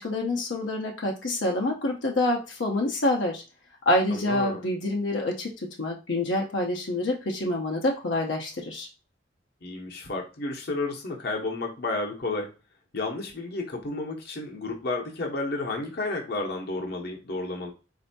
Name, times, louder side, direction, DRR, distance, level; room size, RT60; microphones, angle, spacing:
voice 1, 0.0-3.4 3.9-5.5 5.8-8.9, left 1 dB, 80° left, 0 dB, 0.7 m, -27 dB
voice 2, 4.1-4.7 9.6-12.5 12.9-17.7, left 2 dB, 60° left, 1 dB, 0.9 m, -31 dB
4.3 x 2.7 x 2.7 m, 0.30 s
head